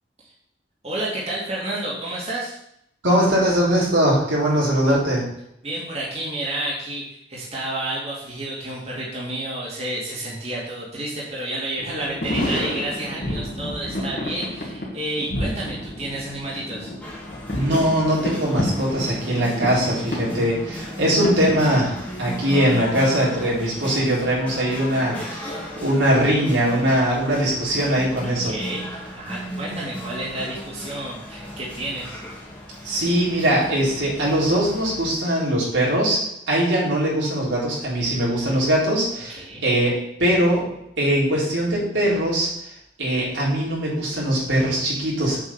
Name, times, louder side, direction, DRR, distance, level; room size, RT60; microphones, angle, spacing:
voice 1, 0.8-2.6 5.6-16.9 28.2-32.2 39.3-39.6, right 1 dB, 35° right, -5 dB, 2.5 m, -30 dB
voice 2, 3.0-5.2 17.5-25.5 25.8-28.5 32.8-39.9 40.2-40.7 41.0-42.5 43.0-45.4, right 1 dB, 85° right, -5 dB, 4.1 m, -21 dB
sound 1, 11.8-22.0, left 1 dB, 45° left, 2.2 m, -30 dB
sound 2, 17.0-35.1, equal, 10° left, 2.1 m, -36 dB
7.7 x 5.5 x 7.2 m, 0.77 s
head